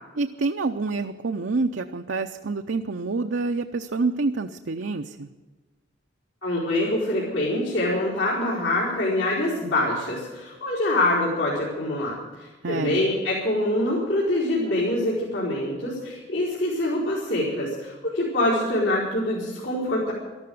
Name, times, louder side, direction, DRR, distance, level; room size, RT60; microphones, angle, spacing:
voice 1, 0.2-5.3 12.6-13.1, right 3 dB, 70° right, 5 dB, 0.7 m, -27 dB
voice 2, 6.4-12.2 12.7-20.1, left 1 dB, 75° left, -7 dB, 4.7 m, -25 dB
13.5 x 12.5 x 7.8 m, 1.2 s
head